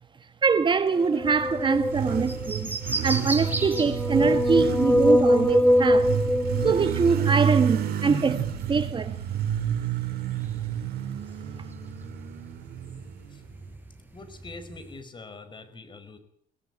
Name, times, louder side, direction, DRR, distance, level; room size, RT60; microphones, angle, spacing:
voice 1, 0.4-2.7 3.0-6.1 6.6-9.2, right 5 dB, 30° right, 1.4 m, -24 dB
sound 1, 1.0-2.6 3.5-7.4, left 1 dB, 5° left, 1.6 m, -23 dB
Motorcycle, 1.0-13.7, right 9 dB, 65° right, 4.4 m, -30 dB
sound 2, 1.2-15.0, right 2 dB, 10° right, 5.5 m, -39 dB
voice 2, 14.1-16.2, left 3 dB, 30° left, 5.1 m, -44 dB
24.0 x 17.0 x 9.9 m
cardioid pair, 110°, 17 cm